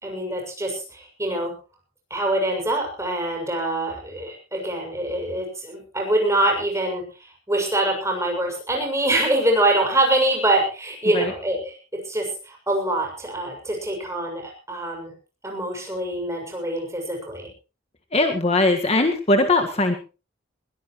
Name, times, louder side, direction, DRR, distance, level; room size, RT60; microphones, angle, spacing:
voice 1, 0.0-1.5 2.1-7.0 7.5-11.7 12.1-15.1 15.4-17.5, right 1 dB, 15° right, 2 dB, 6.8 m, -24 dB
voice 2, 18.1-19.9, left 2 dB, 30° left, 5 dB, 1.7 m, -20 dB
21.0 x 17.5 x 3.1 m, 0.33 s
head